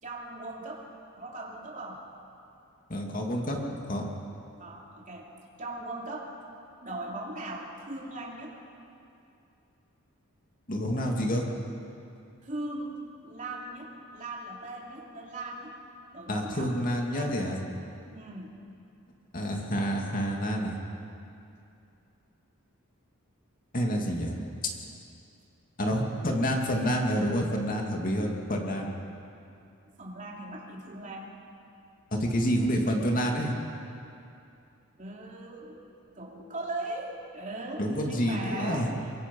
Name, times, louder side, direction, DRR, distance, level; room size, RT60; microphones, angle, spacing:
voice 1, 0.0-0.9 1.2-2.0 4.6-5.3 5.6-6.3 6.8-8.6 12.4-15.7 16.1-17.5 18.1-18.6 30.0-31.3 35.0-35.8 36.1-39.0, right 2 dB, 35° right, -2 dB, 3.1 m, -39 dB
voice 2, 2.9-3.6 3.9-4.0 10.7-11.4 16.3-17.6 19.3-20.7 23.7-24.3 25.8-28.9 32.1-33.5 37.8-38.9, equal, 40° left, 0 dB, 2.6 m, -28 dB
24.0 x 22.5 x 5.5 m, 2.7 s
head